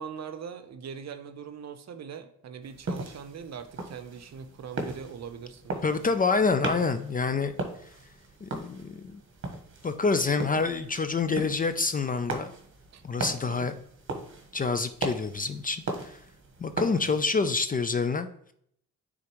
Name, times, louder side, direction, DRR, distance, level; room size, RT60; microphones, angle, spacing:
voice 1, 0.0-6.1 12.9-13.8 16.9-17.2, right 7 dB, 55° right, 9 dB, 0.7 m, -42 dB
sound 1, 2.6-17.5, right 2 dB, 40° right, 1.2 m, -38 dB
voice 2, 5.8-7.5 8.4-9.2 9.8-12.5 13.0-13.7 14.5-16.2 16.6-18.3, left 4 dB, 25° left, 10 dB, 0.4 m, -27 dB
9.4 x 3.8 x 3.0 m, 0.69 s
cardioid pair, 85°, 33 cm